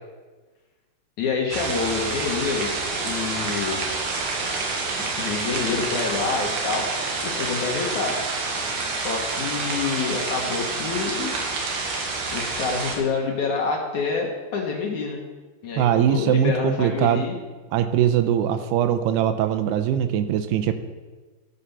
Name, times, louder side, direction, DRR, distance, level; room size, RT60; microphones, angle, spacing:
voice 1, 1.2-3.8 5.2-8.2 8.9-11.3 12.3-15.2 15.6-17.4, left 5 dB, 65° left, 0 dB, 1.9 m, -27 dB
sound 1, 1.5-13.0, right 3 dB, 65° right, 3.3 m, -28 dB
voice 2, 15.8-17.2 17.7-20.7, right 10 dB, 85° right, 10 dB, 2.5 m, -21 dB
13.0 x 8.4 x 5.6 m, 1.3 s
omnidirectional pair, 5.2 m